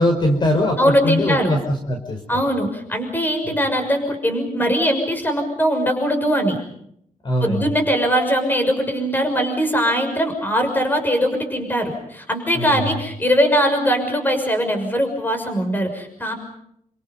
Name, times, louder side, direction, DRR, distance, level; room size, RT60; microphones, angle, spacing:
voice 1, 0.0-2.2 3.5-3.6 7.2-7.7 12.5-12.9, left 1 dB, 35° left, 3 dB, 5.1 m, -21 dB
voice 2, 0.8-1.5 2.3-6.6 7.4-16.3, equal, 15° left, 6 dB, 6.4 m, -21 dB
29.5 x 27.0 x 5.4 m, 0.71 s
wide cardioid pair, 155°, 14 cm